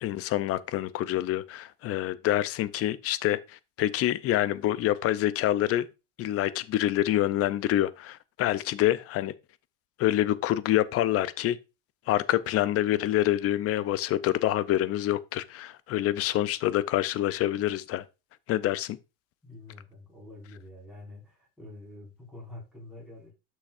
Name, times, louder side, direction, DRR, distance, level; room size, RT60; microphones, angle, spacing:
voice 1, 0.0-5.9 6.2-9.3 10.0-11.6 12.1-18.0 18.5-19.0, left 13 dB, 40° left, 0.5 m, -26 dB
voice 2, 19.4-23.3, left 2 dB, ahead, 4.9 m, -46 dB
11.5 x 6.4 x 2.5 m
cardioid pair, 145°, 38 cm